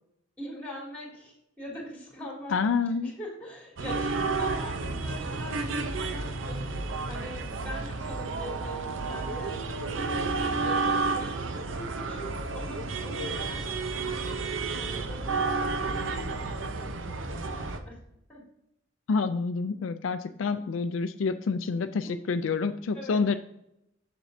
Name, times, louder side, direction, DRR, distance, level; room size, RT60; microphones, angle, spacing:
voice 1, 0.4-2.6 3.0-15.3 15.7-17.9 18.3-18.4 22.0-22.2 22.9-23.2, equal, 10° left, -3 dB, 2.7 m, -43 dB
voice 2, 2.5-3.1 19.1-23.4, left 4 dB, 80° left, 9 dB, 0.4 m, -28 dB
sound 1, 3.8-17.8, right 3 dB, 75° right, 0.7 m, -31 dB
7.3 x 7.0 x 2.7 m, 0.81 s
head